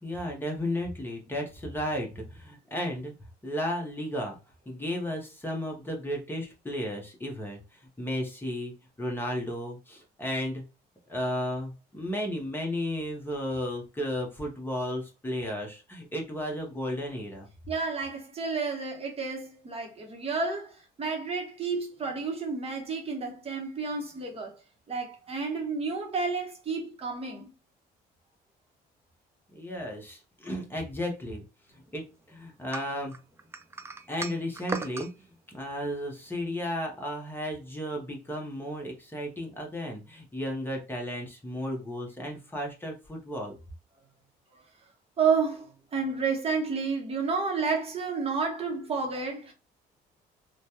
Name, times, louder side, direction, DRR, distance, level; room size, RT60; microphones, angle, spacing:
voice 1, 0.0-3.2 3.4-4.3 4.7-8.7 9.0-10.6 11.1-17.5 29.5-31.4 31.7-33.1 34.1-35.1 35.5-43.5, equal, 10° left, 0.9 m, -34 dB
voice 2, 17.7-24.5 24.9-27.5 44.5-44.7 45.2-49.5, right 4 dB, 35° right, 0.9 m, -31 dB
sound 1, 32.7-35.1, right 3 dB, 15° right, 0.3 m, -37 dB
3.2 x 2.2 x 2.7 m
cardioid pair, 110°, 17 cm